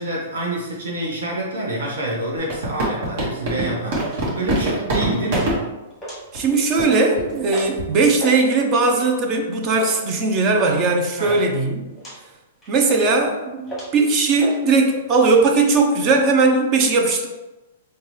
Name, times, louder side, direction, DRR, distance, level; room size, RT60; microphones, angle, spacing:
voice 1, 0.0-5.7 11.2-11.4, right 1 dB, 90° right, -2 dB, 1.2 m, -27 dB
sound 1, 2.5-5.6 6.3-6.5 6.8-6.9 7.2-7.4 7.8-8.0, right 1 dB, 60° right, 1.1 m, -23 dB
sound 2, 4.0-4.2 4.7-5.0 5.3-5.5 5.9-6.5 6.8-7.0 7.5-7.8 8.1-8.4 8.9-9.2 9.8-10.0 10.6-10.8 11.0-11.5 12.0-12.2 12.6-13.2 13.7-14.0 14.4-14.6 14.8-15.4, right 1 dB, 5° left, 1.1 m, -32 dB
voice 2, 6.3-11.9 12.7-17.3, right 3 dB, 30° right, 3 dB, 0.5 m, -18 dB
4.1 x 2.2 x 3.2 m, 1.1 s
hypercardioid pair, 155°, 0 cm